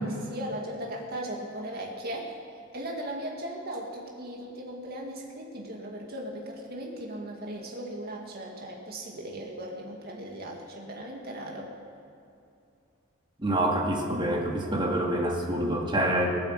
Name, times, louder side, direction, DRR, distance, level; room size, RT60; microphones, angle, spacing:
voice 1, 0.0-2.3 2.7-11.7, right 1 dB, 50° right, 0 dB, 2.1 m, -37 dB
voice 2, 13.4-16.3, right 1 dB, 25° right, 0 dB, 2.1 m, -26 dB
19.0 x 8.5 x 7.9 m, 2.6 s
head